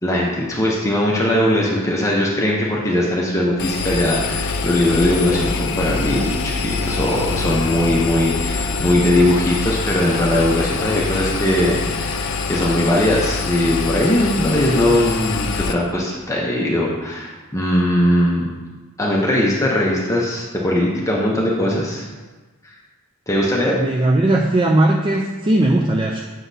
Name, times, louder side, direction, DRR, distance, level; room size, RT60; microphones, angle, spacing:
voice 1, 0.0-18.5 19.0-22.1 22.6-22.7 23.3-23.8, left 1 dB, 15° left, -3 dB, 0.7 m, -20 dB
Engine, 3.6-15.7, left 4 dB, 75° left, 0.5 m, -24 dB
voice 2, 23.7-26.2, right 1 dB, 25° right, 1 dB, 0.4 m, -18 dB
7.9 x 6.2 x 2.7 m, 1.3 s
head